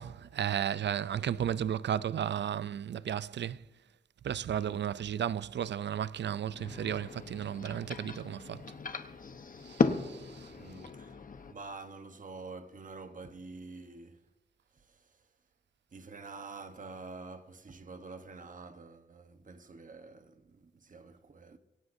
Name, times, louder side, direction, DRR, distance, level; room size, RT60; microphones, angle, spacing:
voice 1, 0.0-3.6 4.2-8.6 9.7-10.5, right 9 dB, 65° right, 0.4 m, -34 dB
voice 2, 4.5-4.9 10.6-14.2 14.7-15.3 15.9-21.6, right 3 dB, 40° right, 1.1 m, -48 dB
sound 1, 6.5-11.5, left 4 dB, 45° left, 1.0 m, -36 dB
22.5 x 17.5 x 2.7 m
wide cardioid pair, 110°, 20 cm